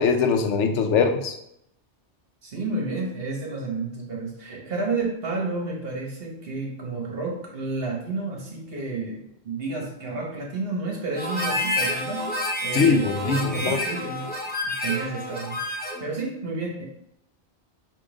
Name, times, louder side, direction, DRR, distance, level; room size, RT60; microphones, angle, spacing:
voice 1, 0.0-1.3 12.7-13.8, left 5 dB, 90° left, 5 dB, 0.9 m, -22 dB
voice 2, 2.4-14.3 14.6-16.9, right 3 dB, 55° right, -1 dB, 1.3 m, -31 dB
Harmonica, 11.2-16.1, left 1 dB, 15° left, 0.4 m, -29 dB
3.7 x 2.9 x 4.8 m, 0.76 s
omnidirectional pair, 1.2 m